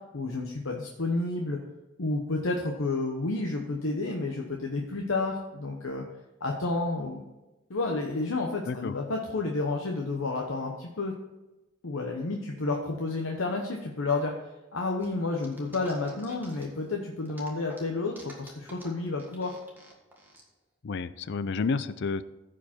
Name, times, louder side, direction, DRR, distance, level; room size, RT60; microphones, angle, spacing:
voice 1, 0.1-1.6 2.0-6.0 6.4-7.2 7.7-11.1 11.8-14.3 14.7-19.6, left 3 dB, 90° left, 1 dB, 1.0 m, -30 dB
voice 2, 8.7-9.0 20.8-22.2, left 4 dB, 60° left, 15 dB, 0.4 m, -30 dB
sound 1, 15.0-16.9 17.3-20.4, right 1 dB, 10° right, 1.6 m, -51 dB
15.0 x 5.1 x 4.4 m, 1.0 s
head